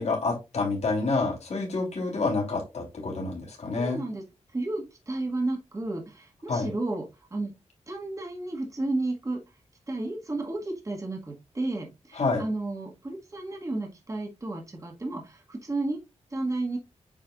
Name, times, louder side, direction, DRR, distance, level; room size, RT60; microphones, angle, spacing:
voice 1, 0.0-4.0 6.5-6.7 12.1-12.5, left 3 dB, 65° left, -2 dB, 3.2 m, -28 dB
voice 2, 3.8-4.2 4.5-7.5 7.9-9.4 9.9-16.0 16.3-16.8, right 2 dB, 25° right, 1 dB, 1.7 m, -32 dB
8.6 x 4.7 x 2.4 m, 0.24 s
wide cardioid pair, 120°, 12 cm